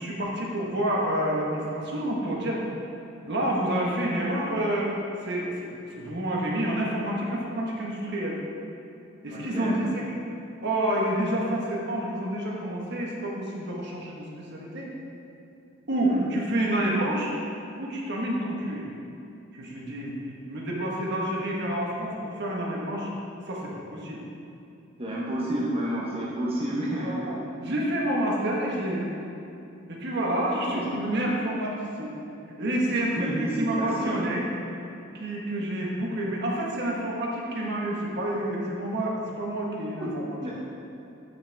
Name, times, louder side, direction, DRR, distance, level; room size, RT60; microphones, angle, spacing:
voice 1, 0.0-2.7 3.3-5.0 5.2-8.4 9.2-10.0 10.6-14.9 15.9-17.3 17.8-18.9 19.5-20.1 20.5-23.1 23.5-24.2 26.9-27.4 27.6-29.1 29.9-32.1 32.6-34.5 34.8-40.4, right 1 dB, 55° right, -3 dB, 1.3 m, -28 dB
voice 2, 9.3-9.8 16.0-16.3 25.0-27.3 30.6-30.8 33.2-34.1 40.0-40.1 40.4-40.5, right 1 dB, 30° right, -5 dB, 0.9 m, -30 dB
9.3 x 6.2 x 3.5 m, 2.8 s
head